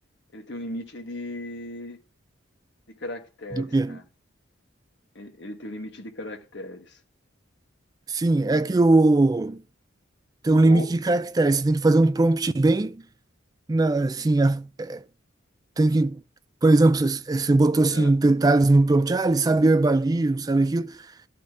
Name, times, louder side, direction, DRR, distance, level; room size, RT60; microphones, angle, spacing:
voice 1, 0.3-2.0 2.9-4.0 5.1-7.0 10.6-10.9 17.9-18.1, left 1 dB, 60° left, 1.3 m, -37 dB
voice 2, 3.6-4.0 8.1-9.6 10.4-13.0 13.7-15.0 15.8-16.2 16.6-21.0, right 2 dB, 20° right, 0.3 m, -20 dB
12.0 x 4.3 x 3.4 m
head